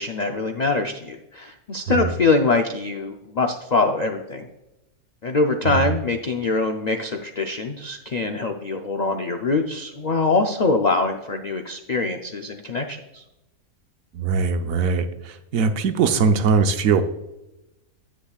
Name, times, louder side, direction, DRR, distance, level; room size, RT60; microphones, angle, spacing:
voice 1, 0.0-4.5 5.2-13.2, left 3 dB, 75° left, 4 dB, 0.4 m, -23 dB
voice 2, 14.1-17.1, right 5 dB, 70° right, 8 dB, 1.1 m, -21 dB
10.0 x 8.4 x 2.4 m, 0.95 s
omnidirectional pair, 1.5 m